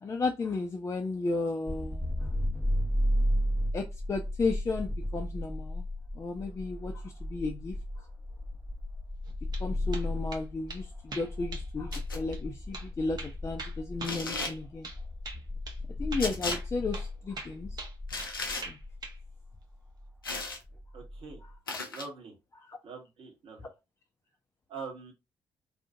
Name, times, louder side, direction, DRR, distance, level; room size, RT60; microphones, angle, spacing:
voice 1, 0.0-2.0 3.7-5.8 6.2-7.7 9.6-14.9 16.0-17.8 18.7-18.8 22.7-22.8, left 3 dB, 25° left, 0.4 m, -34 dB
sound 1, 1.7-21.6, left 1 dB, 5° right, 0.8 m, -34 dB
sound 2, 9.3-9.7 9.9-10.4 10.7-10.8 11.1-11.7 11.9-12.1 12.3-12.4 12.7-12.9 13.2-15.0 15.2-15.4 15.7-15.8 16.1-16.7 16.9-17.1 17.4-18.3 18.6-19.2, right 3 dB, 40° right, 0.8 m, -42 dB
sound 3, 11.9-12.2 14.0-14.6 16.2-16.6 18.1-18.7 20.2-20.6 21.7-22.1, left 3 dB, 85° left, 0.4 m, -35 dB
voice 2, 20.9-21.4 21.9-22.3 22.8-23.7 24.7-25.1, right 4 dB, 55° right, 1.1 m, -43 dB
2.6 x 2.4 x 2.5 m
figure-of-eight pair, 40°, 11 cm